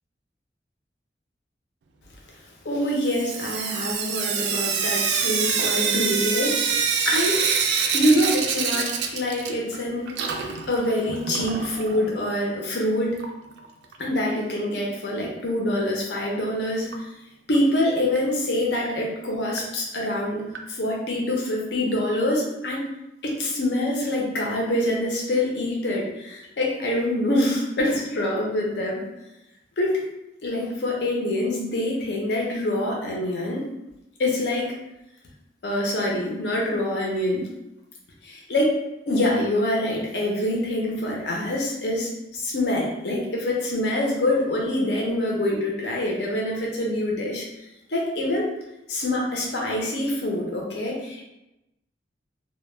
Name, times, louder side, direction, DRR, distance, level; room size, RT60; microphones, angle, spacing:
voice 1, 2.6-7.4 7.9-13.2 14.0-17.1 17.5-22.8 23.2-29.0 29.8-30.0 30.4-33.6 34.2-34.7 35.6-37.5 38.2-38.7 39.1-47.5 47.9-48.5 48.9-51.2, left 1 dB, 75° left, -2 dB, 0.6 m, -25 dB
Sink (filling or washing) / Drip, 3.0-9.8 10.1-12.0 13.2-13.3 13.6-13.7 13.9-14.0 16.9-17.0 17.5-17.6 18.2-18.3 18.9-19.0 19.6-19.7 20.5-20.6, right 6 dB, 75° right, 0.3 m, -26 dB
2.1 x 2.1 x 3.1 m, 0.92 s
head